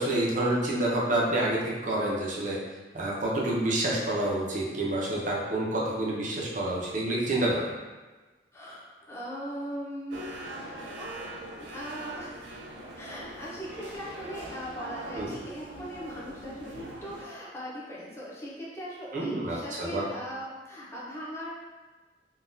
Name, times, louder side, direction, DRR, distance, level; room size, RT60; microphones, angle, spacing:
voice 1, 0.0-2.6 2.9-7.7 15.2-15.3 19.1-20.0, right 1 dB, 45° right, -3 dB, 0.7 m, -28 dB
voice 2, 8.5-10.2 11.0-12.4 13.0-21.6, equal, 15° left, -7 dB, 0.7 m, -39 dB
sound 1, 10.1-17.2, right 1 dB, 85° right, 0.5 m, -42 dB
3.8 x 2.3 x 2.6 m, 1.3 s
head